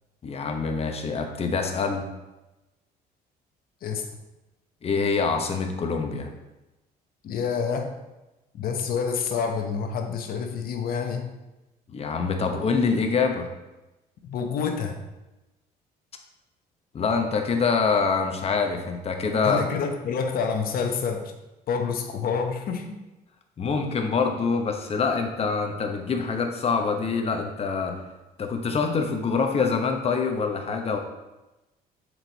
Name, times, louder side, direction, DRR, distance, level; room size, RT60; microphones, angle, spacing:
voice 1, 0.2-2.0 4.8-6.3 11.9-13.5 16.9-19.6 23.6-28.0 28.4-31.0, left 5 dB, 35° left, 4 dB, 1.0 m, -25 dB
voice 2, 7.2-7.9 8.5-11.3 14.2-15.0 19.4-21.3 21.7-23.0, left 6 dB, 60° left, 4 dB, 1.0 m, -28 dB
7.3 x 4.7 x 4.1 m, 1.0 s
cardioid pair, 110°, 17 cm